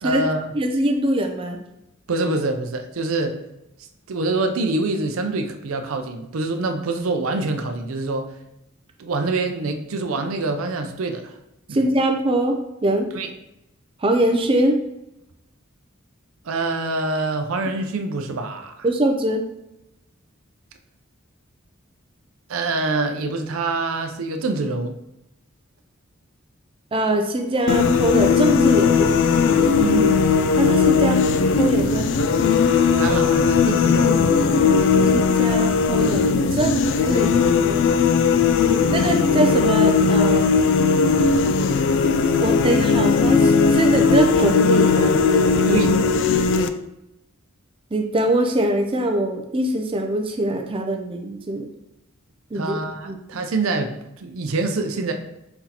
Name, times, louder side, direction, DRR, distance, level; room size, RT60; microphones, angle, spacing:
voice 1, 0.0-0.4 2.1-3.3 4.1-8.3 9.0-11.3 11.7-11.8 13.1-13.3 16.4-18.9 22.5-24.9 29.7-30.1 33.0-34.4 45.7-46.0 52.5-55.1, right 3 dB, 90° right, 6 dB, 0.5 m, -25 dB
voice 2, 0.5-1.6 11.7-13.1 14.0-14.8 18.8-19.4 26.9-29.2 30.6-31.3 31.6-32.1 35.1-36.2 36.5-38.0 38.3-38.5 38.9-40.6 42.4-45.2 47.9-51.6 52.5-52.8 53.0-53.2, right 1 dB, 25° right, 3 dB, 0.4 m, -22 dB
sound 1, 27.7-46.7, left 5 dB, 60° left, 0.3 m, -18 dB
4.4 x 3.9 x 2.8 m, 0.88 s
head